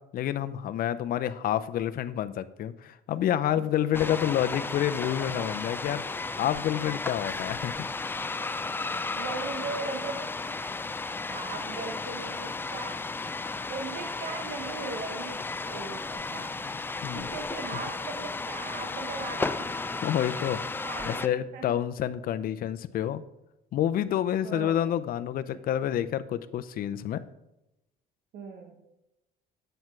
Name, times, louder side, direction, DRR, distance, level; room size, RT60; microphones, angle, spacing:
voice 1, 0.1-6.0 6.4-7.9 17.0-17.3 20.0-20.6 21.1-23.2 23.7-27.2, left 11 dB, 60° left, 12 dB, 0.6 m, -28 dB
sound 1, 3.9-21.3, left 3 dB, 15° left, 0.4 m, -34 dB
voice 2, 5.2-5.5 9.1-10.3 11.2-13.1 13.7-16.7 17.1-19.7 20.8-21.8 24.4-24.9 28.3-28.8, right 4 dB, 70° right, 2 dB, 1.3 m, -39 dB
9.6 x 7.9 x 4.6 m, 0.91 s
cardioid pair, 110°, 17 cm